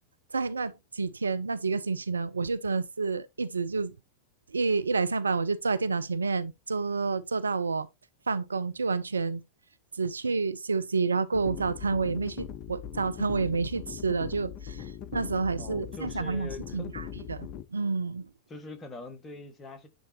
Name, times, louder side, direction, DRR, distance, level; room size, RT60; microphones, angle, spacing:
voice 1, 0.3-3.9 4.5-7.9 8.3-9.4 9.9-18.3, right 4 dB, 75° right, 0.5 m, -29 dB
sound 1, 11.3-17.6, left 9 dB, 35° left, 0.7 m, -40 dB
voice 2, 15.0-17.1 18.5-19.9, left 2 dB, 20° left, 1.8 m, -44 dB
11.0 x 3.7 x 2.9 m
figure-of-eight pair, 90°, 0 cm